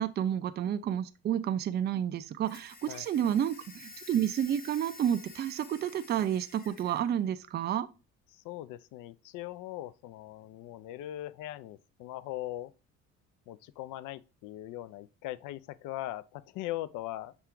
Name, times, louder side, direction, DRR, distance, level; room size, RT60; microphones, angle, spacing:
voice 1, 0.0-7.9, right 10 dB, 25° right, 0.4 m, -30 dB
sound 1, 2.4-7.1, left 3 dB, 20° left, 0.8 m, -51 dB
voice 2, 8.3-12.7 13.5-17.4, left 14 dB, 50° left, 0.4 m, -40 dB
5.7 x 2.3 x 3.7 m
hypercardioid pair, 60°, 40 cm